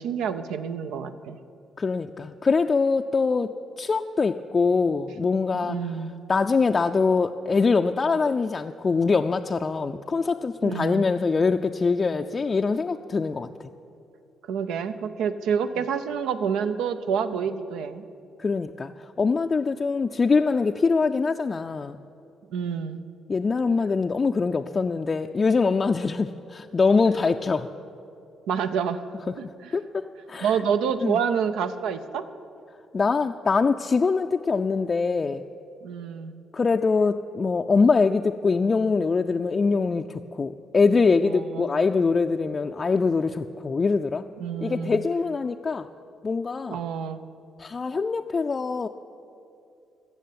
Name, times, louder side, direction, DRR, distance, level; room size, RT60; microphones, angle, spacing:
voice 1, 0.0-1.4 5.5-6.1 10.6-11.1 14.5-18.0 22.5-23.0 28.5-29.0 29.4-29.8 30.4-32.3 35.8-36.3 41.2-41.8 44.4-45.0 46.7-47.2, right 7 dB, 90° right, 10 dB, 0.7 m, -28 dB
voice 2, 1.8-5.8 6.3-13.5 18.4-22.0 23.3-27.7 29.7-30.0 30.3-30.6 31.0-31.2 32.9-35.4 36.5-44.2 44.6-45.9 46.2-46.8 47.6-48.9, left 4 dB, 35° left, 5 dB, 0.4 m, -23 dB
15.0 x 6.4 x 9.3 m, 2.5 s
cardioid pair, 90°, 0 cm